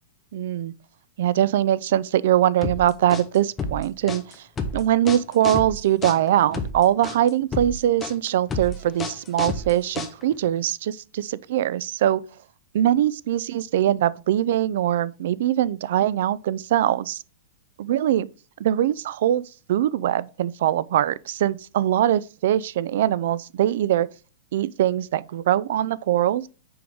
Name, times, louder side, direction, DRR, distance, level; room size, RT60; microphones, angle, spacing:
voice 1, 0.3-0.7 1.2-4.5 4.7-12.2 12.7-17.2 17.8-18.3 18.6-19.4 19.7-24.1 24.5-26.5, right 11 dB, 55° right, 0.3 m, -22 dB
sound 1, 2.6-10.5, left 3 dB, 15° left, 0.7 m, -31 dB
6.1 x 4.7 x 3.5 m
supercardioid pair, 165°, 0 cm